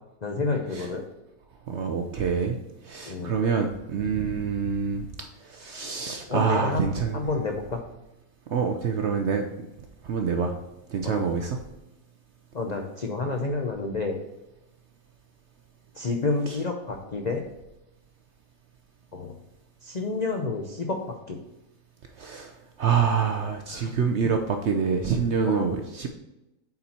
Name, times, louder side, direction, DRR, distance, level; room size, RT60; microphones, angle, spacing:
voice 1, 0.2-1.0 3.1-3.4 6.3-7.8 11.0-11.2 12.5-14.2 15.9-17.4 19.1-19.3 19.8-21.4 23.7-23.9 25.4-25.7, left 3 dB, 85° left, 2 dB, 0.3 m, -29 dB
voice 2, 1.7-2.6 2.8-5.1 5.4-7.2 8.5-9.5 10.0-10.5 10.9-11.6 22.2-26.1, right 6 dB, 65° right, 5 dB, 0.7 m, -26 dB
7.8 x 4.3 x 4.2 m, 0.94 s
omnidirectional pair, 1.7 m